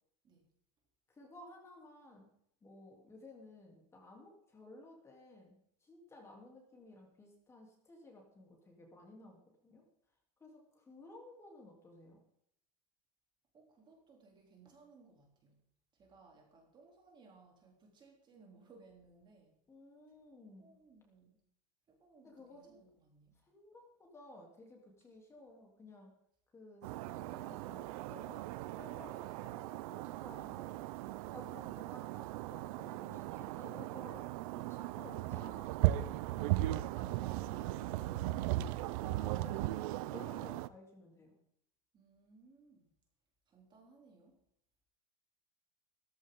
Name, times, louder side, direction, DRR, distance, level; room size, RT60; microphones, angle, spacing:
voice 1, 1.1-2.3 2.6-9.8 10.4-12.2 19.7-20.7 22.2-22.9 23.3-26.2 26.5-28.5 28.8-30.8 31.3-34.3 34.5-38.7 39.0-39.7 40.1-41.4, left 2 dB, 15° left, 0 dB, 3.2 m, -56 dB
voice 2, 13.5-15.6 15.9-19.6 20.6-21.4 21.9-23.3 41.9-42.9 43.5-44.4, right 4 dB, 25° right, 1 dB, 3.3 m, -62 dB
sound 1, 26.8-40.7, right 16 dB, 60° right, 0.7 m, -37 dB
16.5 x 14.5 x 3.8 m, 0.72 s
supercardioid pair, 160°, 20 cm